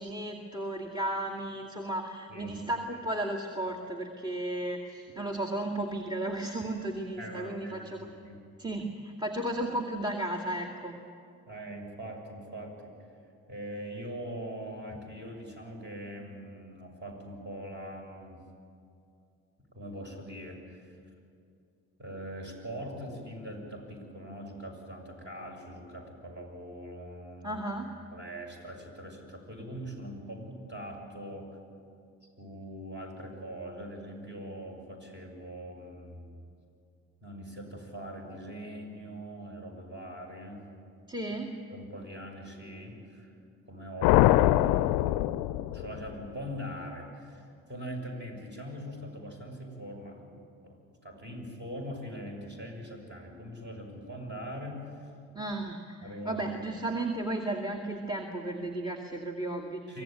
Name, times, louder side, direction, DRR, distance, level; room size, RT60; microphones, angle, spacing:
voice 1, 0.0-8.1 8.6-11.0 27.4-27.9 41.1-41.5 55.3-60.0, right 1 dB, 10° right, 2 dB, 2.3 m, -34 dB
voice 2, 2.3-2.6 7.2-8.4 11.5-12.9 13.5-18.4 19.7-20.9 22.0-27.6 28.1-31.5 32.4-36.4 37.2-40.6 41.7-43.3 43.7-45.4 45.7-55.1 56.0-56.7 59.9-60.0, equal, 30° right, 1 dB, 6.8 m, -42 dB
sound 1, 44.0-46.3, left 16 dB, 65° left, 0.6 m, -23 dB
24.0 x 16.0 x 9.2 m, 2.4 s
hypercardioid pair, 50°, 38 cm